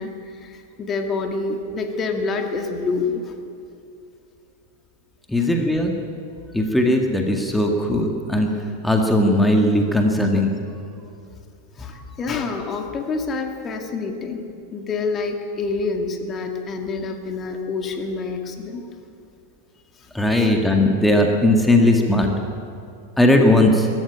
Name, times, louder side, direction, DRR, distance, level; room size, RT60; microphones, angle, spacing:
voice 1, 0.0-3.3 10.2-10.3 11.8-14.4 14.7-18.9 19.9-20.1 20.4-20.5, left 4 dB, 25° left, 4 dB, 2.1 m, -27 dB
voice 2, 5.3-5.9 6.5-8.5 8.8-10.5 20.1-22.3 23.2-23.9, left 1 dB, 5° left, 2 dB, 2.0 m, -18 dB
23.0 x 13.5 x 8.9 m, 2.6 s
figure-of-eight pair, 90°, 0 cm